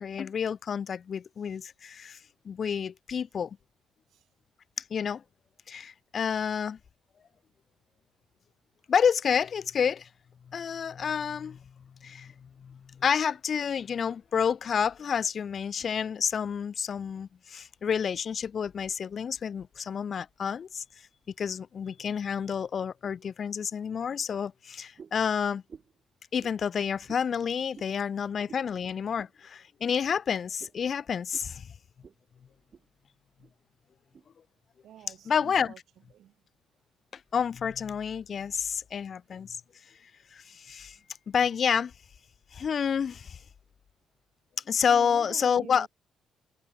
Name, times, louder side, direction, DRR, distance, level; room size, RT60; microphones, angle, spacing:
voice 1, 0.0-2.2 2.5-3.6 4.9-5.2 5.7-6.8 8.9-10.1 10.5-11.6 12.0-12.3 12.6-20.8 21.4-25.6 26.3-31.7 35.3-35.7 37.3-39.6 40.3-41.0 41.3-41.9 42.5-43.4 44.7-45.9, left 7 dB, 50° left, 0.4 m, -29 dB
sound 1, 25.0-25.3 25.7-26.0 26.4-26.6 27.1-27.3 27.7-27.9 28.5-28.7 29.2-29.3 29.8-30.0 30.6-30.8 31.3-31.5 32.0-32.2 32.5-32.9 33.4-33.5 34.1-34.3, right 6 dB, 45° right, 6.8 m, -50 dB
voice 2, 34.8-35.8 36.1-36.3 44.9-45.9, right 11 dB, 75° right, 2.7 m, -47 dB
cardioid pair, 90°, 0 cm